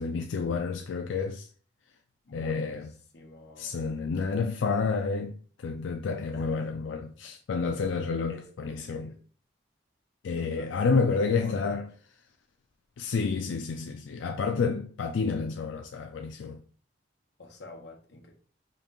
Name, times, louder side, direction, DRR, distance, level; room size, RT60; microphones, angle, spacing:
voice 1, 0.0-1.5 2.3-2.9 3.6-5.3 5.6-9.1 10.2-11.9 13.0-16.6, left 4 dB, 85° left, 0.4 m, -29 dB
voice 2, 2.2-2.8 3.1-3.7 6.3-6.7 7.2-7.3 8.3-9.2 10.4-11.9 17.4-18.3, left 2 dB, 65° left, 1.1 m, -48 dB
5.2 x 2.7 x 3.7 m
head